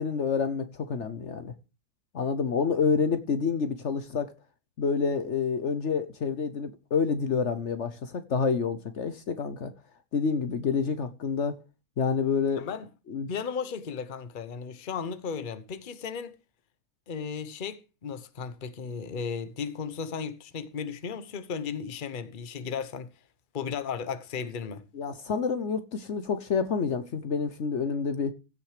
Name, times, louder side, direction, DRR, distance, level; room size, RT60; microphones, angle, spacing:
voice 1, 0.0-1.5 2.1-4.3 4.8-9.7 10.1-11.5 12.0-12.6 13.1-13.3 24.9-28.3, left 5 dB, 60° left, 1.2 m, -28 dB
voice 2, 12.6-12.9 13.3-16.3 17.1-23.1 23.5-24.8, left 6 dB, 40° left, 1.0 m, -35 dB
15.5 x 6.3 x 5.0 m
omnidirectional pair, 1.5 m